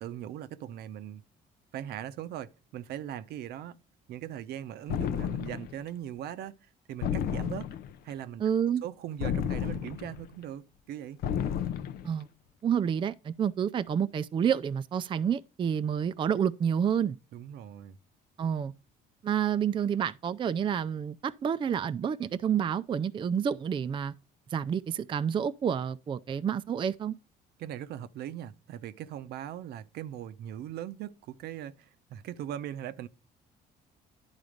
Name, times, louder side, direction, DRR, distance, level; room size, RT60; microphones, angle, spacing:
voice 1, 0.0-1.2 1.7-3.8 4.1-6.5 6.9-7.7 8.0-8.4 8.8-11.2 17.3-18.0 27.6-33.1, right 11 dB, 75° right, 0.7 m, -40 dB
sound 1, 4.9-5.8 7.0-8.0 9.2-10.2 11.2-12.1, left 8 dB, 65° left, 0.6 m, -32 dB
voice 2, 8.4-8.8 12.0-12.3 12.6-17.2 18.4-18.7 19.2-24.1 24.5-27.1, right 8 dB, 30° right, 0.4 m, -29 dB
10.5 x 4.0 x 5.0 m
cardioid pair, 110°, 17 cm